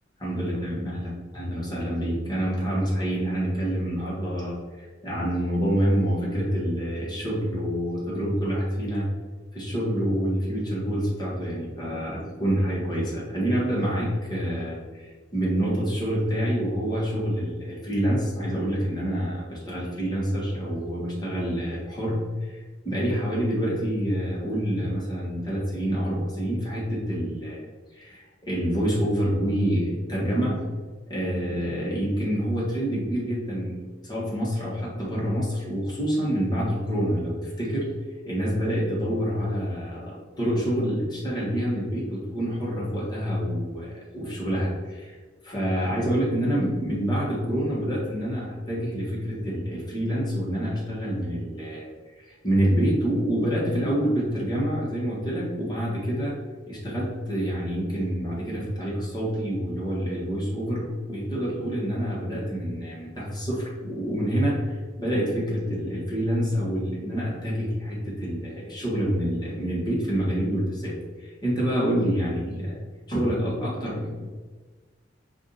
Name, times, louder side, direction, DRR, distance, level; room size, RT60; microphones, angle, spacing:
voice 1, 0.2-9.1 9.5-22.6 22.8-27.6 27.9-30.6 31.1-37.9 38.2-45.2 45.4-51.9 52.2-56.3 56.7-70.9 71.2-72.8 73.1-74.2, equal, 25° left, -6 dB, 1.5 m, -27 dB
4.8 x 2.7 x 4.0 m, 1.4 s
head